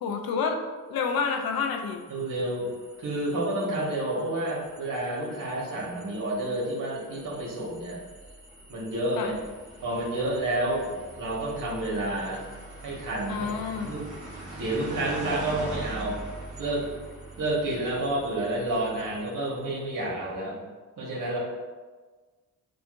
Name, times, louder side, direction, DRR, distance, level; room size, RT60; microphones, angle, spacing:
voice 1, 0.0-0.6 0.9-2.0 9.2-9.3 13.3-13.9, left 5 dB, 85° left, 4 dB, 0.6 m, -28 dB
sound 1, 1.2-19.8, right 2 dB, 20° right, 1.5 m, -44 dB
voice 2, 2.1-2.7 3.0-8.0 8.7-9.3 9.8-12.4 12.8-13.5 13.8-14.0 14.6-16.2 16.6-16.9 17.4-20.6 21.0-21.4, right 1 dB, 65° right, -4 dB, 1.4 m, -29 dB
6.7 x 2.4 x 2.5 m, 1.4 s
cardioid pair, 100°, 35 cm